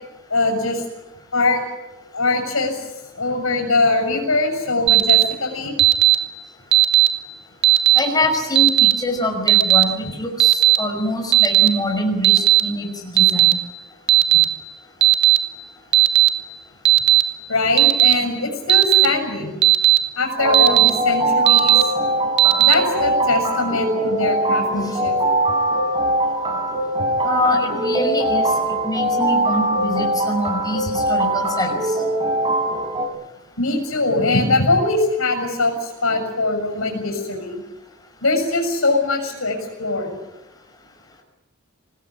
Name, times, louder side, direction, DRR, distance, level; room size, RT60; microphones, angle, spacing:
voice 1, 0.3-0.8 1.3-1.6 2.1-2.8 3.2-5.7 17.5-19.6 20.2-21.8 22.6-25.1 33.6-37.5 38.2-40.2, left 3 dB, 75° left, 5 dB, 7.0 m, -21 dB
Alarm, 4.9-5.2 5.8-6.2 6.7-7.1 7.6-8.0 8.6-8.9 9.5-9.8 10.4-10.8 11.3-11.7 12.2-12.6 13.2-13.5 14.1-14.4 15.0-15.4 15.9-16.3 16.9-17.2 17.8-18.1 18.7-19.1 19.6-20.0 20.5-20.9 21.5-21.8 22.4-22.7, right 16 dB, 55° right, 1.8 m, -13 dB
voice 2, 7.9-10.5 10.8-13.6 27.2-28.5 28.8-31.7, left 1 dB, 20° left, 2 dB, 5.7 m, -24 dB
sound 1, 20.4-33.1, right 1 dB, 25° right, 5.1 m, -22 dB
25.5 x 19.5 x 9.9 m, 1.0 s
head